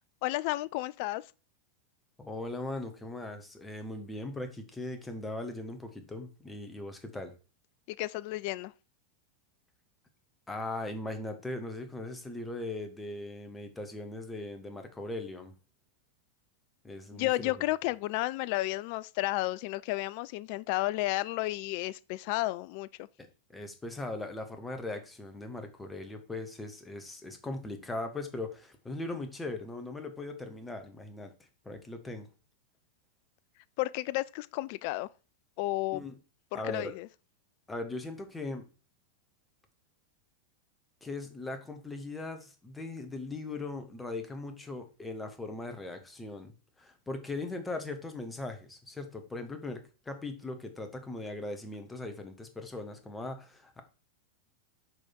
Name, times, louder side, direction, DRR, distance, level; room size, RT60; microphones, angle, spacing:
voice 1, 0.2-1.2 7.9-8.7 17.1-23.1 33.8-35.1 35.6-36.0 36.5-37.1, left 18 dB, 45° left, 0.3 m, -32 dB
voice 2, 2.2-7.3 10.5-15.5 16.8-17.5 23.5-31.3 31.6-32.3 35.9-36.2 36.5-36.9 37.7-38.6 41.0-53.8, left 2 dB, 10° left, 1.4 m, -39 dB
6.3 x 5.0 x 4.5 m
figure-of-eight pair, 90°, 0 cm